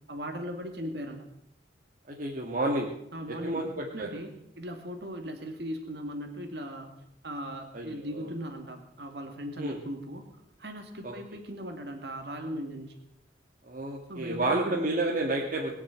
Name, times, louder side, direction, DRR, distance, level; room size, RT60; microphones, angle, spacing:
voice 1, 0.1-1.3 3.1-6.9 7.2-10.3 10.6-12.9 14.1-14.8, equal, 60° right, 4 dB, 2.3 m, -38 dB
voice 2, 2.1-2.9 3.4-4.1 7.7-8.3 9.6-9.8 11.0-11.1 13.6-15.7, right 2 dB, 45° right, -1 dB, 1.9 m, -30 dB
21.5 x 7.2 x 9.0 m, 0.79 s
head